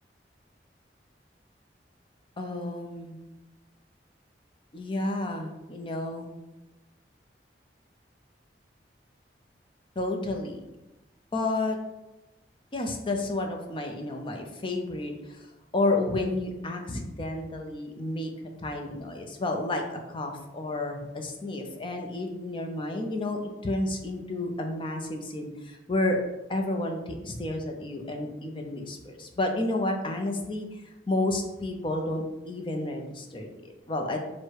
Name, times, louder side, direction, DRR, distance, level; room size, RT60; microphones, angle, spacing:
voice 1, 2.4-3.2 4.7-6.3 10.0-10.6 11.3-11.8 12.7-15.5 15.7-18.3 18.6-26.2 26.5-34.2, left 2 dB, 30° left, 3 dB, 0.5 m, -31 dB
4.6 x 2.1 x 4.6 m, 1.0 s
head